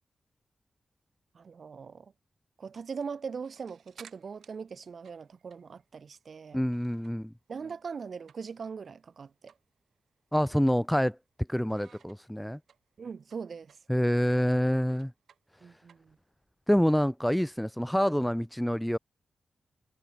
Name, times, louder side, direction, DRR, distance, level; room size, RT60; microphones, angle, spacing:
voice 1, 1.3-2.1 2.6-6.6 7.5-9.5 13.0-13.8 15.6-16.2, right 5 dB, 60° right, 6.7 m, -41 dB
sound 1, 2.8-7.3 7.6-8.8 9.1-9.2 9.5-9.7 10.1-11.3 11.7-16.5, right 7 dB, 85° right, 7.6 m, -58 dB
voice 2, 6.5-7.3 10.3-11.2 11.5-12.6 13.9-15.1 15.6-15.7 16.7-19.0, equal, 5° left, 0.8 m, -27 dB
cardioid pair, 80°, 0 cm